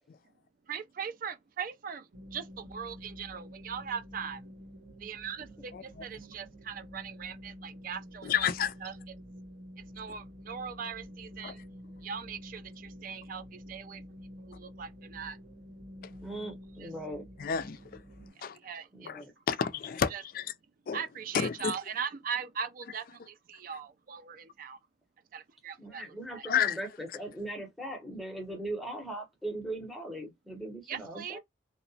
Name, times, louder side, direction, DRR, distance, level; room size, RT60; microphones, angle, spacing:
voice 1, 0.7-4.5 5.0-8.3 8.8-8.9 9.8-11.6 12.0-14.1 14.4-15.4 16.8-16.9 18.3-19.1 20.1-20.2 20.9-24.8 25.3-26.0 26.3-26.5 30.9-31.4, right 7 dB, 45° right, 0.3 m, -40 dB
sound 1, 2.1-18.3, equal, 70° right, 1.1 m, -49 dB
voice 2, 8.2-8.7 11.4-11.5 17.4-18.0 18.4-18.6 19.1-20.5 20.9-21.0 21.3-21.7 26.4-26.8, left 7 dB, 50° left, 0.3 m, -30 dB
voice 3, 16.2-17.3 18.9-19.3 25.8-31.4, right 1 dB, ahead, 0.7 m, -39 dB
2.8 x 2.0 x 2.6 m
head